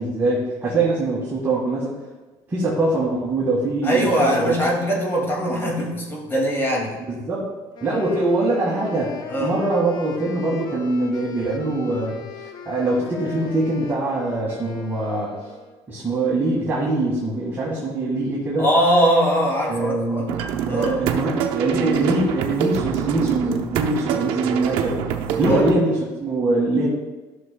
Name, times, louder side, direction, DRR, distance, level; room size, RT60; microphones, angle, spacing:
voice 1, 0.0-2.1 2.5-4.6 7.1-7.5 7.8-15.3 15.9-18.7 19.7-20.4 20.7-25.0 25.4-26.9, right 2 dB, 25° right, -6 dB, 1.8 m, -23 dB
voice 2, 3.8-7.0 9.3-9.5 18.6-20.2 20.7-21.0 25.4-25.7, equal, 25° left, -1 dB, 2.2 m, -21 dB
Wind instrument woodwind instrument, 7.7-15.8, left 6 dB, 50° left, 0.8 m, -39 dB
sound 1, 20.3-25.8, right 8 dB, 70° right, 0.7 m, -25 dB
13.5 x 6.4 x 2.3 m, 1.2 s
cardioid pair, 115°, 9 cm